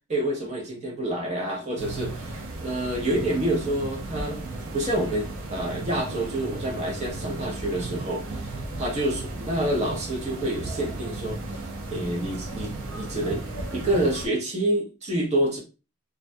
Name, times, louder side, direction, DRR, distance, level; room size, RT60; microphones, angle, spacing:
voice 1, 0.1-4.4 4.7-8.5 8.8-11.4 11.9-13.4 13.7-15.6, right 1 dB, 30° right, 0.7 m, -28 dB
sound 1, 1.8-14.3, right 2 dB, 65° right, 0.5 m, -35 dB
2.4 x 2.1 x 2.5 m
head